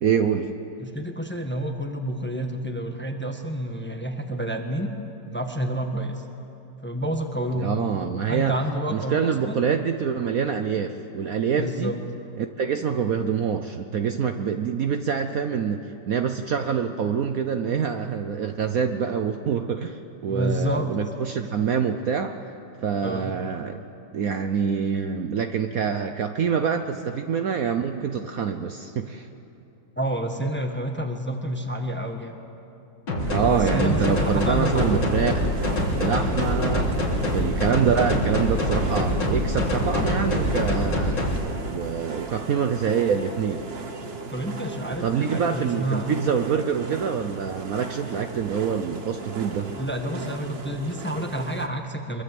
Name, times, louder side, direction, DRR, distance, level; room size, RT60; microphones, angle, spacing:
voice 1, 0.0-0.5 7.6-8.6 8.9-11.9 12.4-22.4 22.8-23.8 24.1-29.3 33.3-35.4 36.0-36.9 37.3-41.2 41.6-43.7 45.0-49.7, right 7 dB, 60° right, 7 dB, 1.1 m, -25 dB
voice 2, 0.8-4.9 5.2-6.2 6.8-9.6 11.6-12.0 20.3-21.0 23.0-23.3 30.0-32.4 33.5-35.1 44.3-46.1 49.8-52.2, equal, 5° left, 4 dB, 1.3 m, -29 dB
sound 1, 33.1-41.3, left 1 dB, 80° left, 3.5 m, -24 dB
sound 2, 33.2-51.7, right 4 dB, 35° right, 1.4 m, -37 dB
24.0 x 23.0 x 7.8 m, 2.8 s
omnidirectional pair, 2.0 m